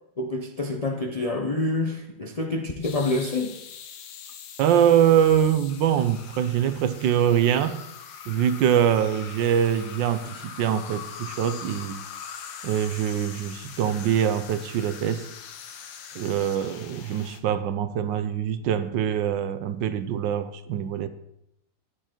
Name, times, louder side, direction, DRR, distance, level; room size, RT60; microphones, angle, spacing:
voice 1, 0.2-3.6, left 2 dB, 70° left, 0.3 m, -27 dB
sound 1, 2.8-17.4, left 7 dB, 90° left, 1.6 m, -42 dB
voice 2, 4.6-7.8 8.3-12.0 12.6-15.3 16.1-21.1, right 9 dB, 85° right, 1.4 m, -23 dB
10.0 x 9.9 x 4.5 m
omnidirectional pair, 1.9 m